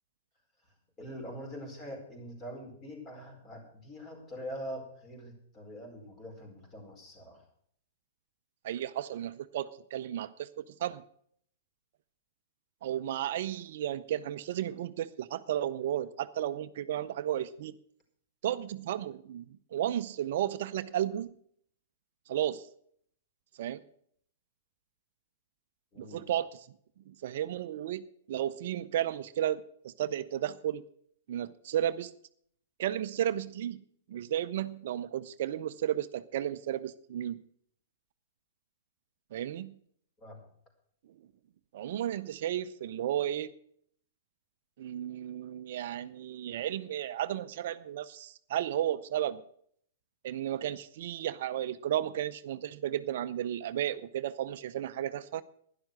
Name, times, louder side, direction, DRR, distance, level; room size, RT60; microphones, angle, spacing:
voice 1, 1.0-7.4 25.9-26.3 40.2-40.4, equal, 25° left, 3 dB, 4.6 m, -44 dB
voice 2, 8.6-11.0 12.8-17.7 18.4-19.5 19.7-21.3 22.3-22.7 23.6-23.8 26.0-26.7 27.1-28.0 28.3-30.8 31.3-32.1 32.8-33.8 34.1-37.4 39.3-39.7 41.7-43.5 44.8-49.4 50.2-55.4, right 11 dB, 55° right, 14 dB, 0.5 m, -33 dB
11.5 x 10.5 x 6.4 m, 0.65 s
figure-of-eight pair, 110°, 0 cm